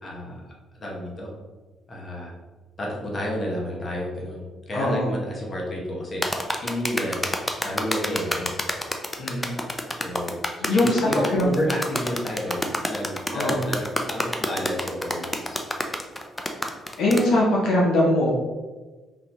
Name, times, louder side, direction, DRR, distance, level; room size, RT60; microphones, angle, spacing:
voice 1, 0.0-0.4 0.8-1.3 1.9-2.3 2.8-7.2 7.6-8.5 10.0-10.4 10.7-15.6, equal, 40° left, -2 dB, 1.0 m, -30 dB
voice 2, 4.7-5.1 9.2-9.6 10.6-11.5 13.3-13.7 17.0-18.3, left 1 dB, 70° left, -4 dB, 0.8 m, -22 dB
sound 1, 6.2-17.3, left 1 dB, 15° left, 0.4 m, -28 dB
3.9 x 2.7 x 3.0 m, 1.3 s
cardioid pair, 90°, 0 cm